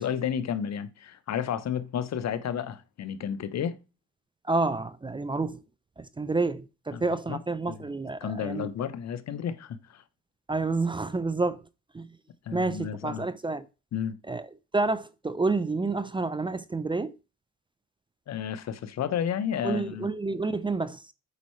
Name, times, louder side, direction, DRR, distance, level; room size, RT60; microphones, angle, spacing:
voice 1, 0.0-3.8 6.9-7.4 7.7-7.8 8.2-10.0 12.5-13.2 13.9-14.2 18.3-20.1, left 8 dB, 60° left, 0.9 m, -32 dB
voice 2, 4.4-5.6 6.0-8.7 10.5-11.6 11.9-12.1 12.5-13.7 14.3-14.5 14.7-17.2 19.6-21.1, right 3 dB, 15° right, 0.5 m, -29 dB
8.1 x 5.4 x 3.1 m
cardioid pair, 90°, 30 cm